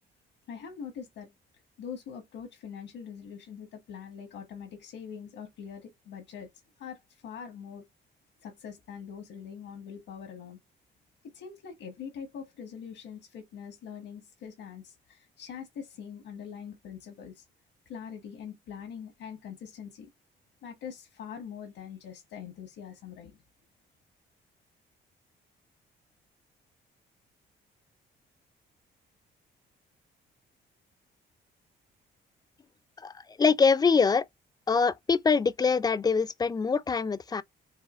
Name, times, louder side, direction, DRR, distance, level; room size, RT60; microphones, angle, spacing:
voice 1, 0.5-1.3 1.8-6.5 6.8-7.8 8.4-10.6 11.2-17.4 17.8-20.1 20.6-23.4, left 7 dB, 85° left, 1.3 m, -43 dB
voice 2, 33.4-34.2 34.7-37.4, left 5 dB, 20° left, 0.4 m, -24 dB
4.8 x 2.7 x 2.4 m
cardioid pair, 90°, 20 cm